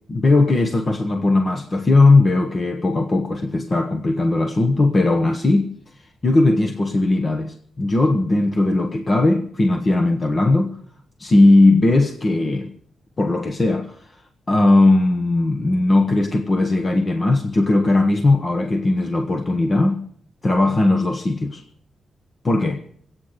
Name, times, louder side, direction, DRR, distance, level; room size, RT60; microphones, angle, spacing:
voice 1, 0.1-5.7 6.2-10.8 11.2-12.7 13.2-14.2 14.5-20.0 20.4-21.6 22.4-22.8, left 2 dB, 30° left, 1.0 m, -18 dB
23.0 x 9.0 x 6.6 m
wide cardioid pair, 150°, 0 cm